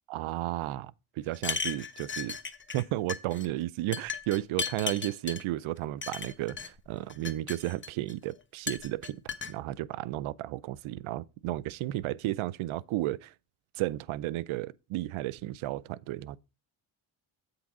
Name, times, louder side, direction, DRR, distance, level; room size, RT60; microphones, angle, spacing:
voice 1, 0.1-2.4 2.7-9.2 9.5-13.3 13.8-16.4, right 16 dB, 80° right, 0.6 m, -33 dB
sound 1, 1.3-2.8 3.1-3.5 3.9-5.4 6.0-6.7 7.1-8.1 8.7-9.5, left 5 dB, 25° left, 1.0 m, -36 dB
8.2 x 3.9 x 5.9 m
cardioid pair, 80°, 47 cm